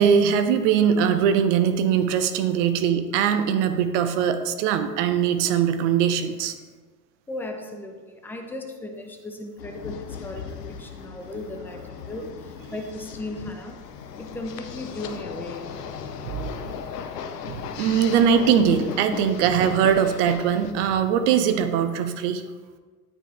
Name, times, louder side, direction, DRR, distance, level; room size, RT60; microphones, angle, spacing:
voice 1, 0.0-6.5 16.2-16.6 17.5-22.4, right 8 dB, 50° right, 9 dB, 0.7 m, -21 dB
voice 2, 7.3-13.8 14.2-15.7, left 2 dB, 5° left, 5 dB, 0.3 m, -36 dB
sound 1, 9.6-20.7, left 7 dB, 75° left, 0.6 m, -37 dB
8.9 x 4.4 x 3.2 m, 1.4 s
figure-of-eight pair, 70°, 49 cm